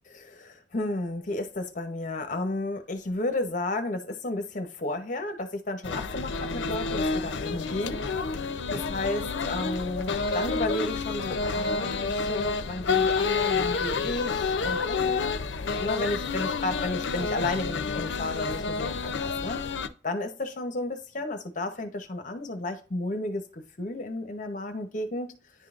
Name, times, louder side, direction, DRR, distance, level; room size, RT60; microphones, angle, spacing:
voice 1, 0.1-8.0 8.7-15.4 15.8-19.6 20.0-25.3, left 2 dB, 45° left, 7 dB, 0.9 m, -32 dB
sound 1, 5.8-19.9, left 4 dB, 80° left, 0.5 m, -29 dB
10.0 x 3.8 x 2.5 m, 0.37 s
head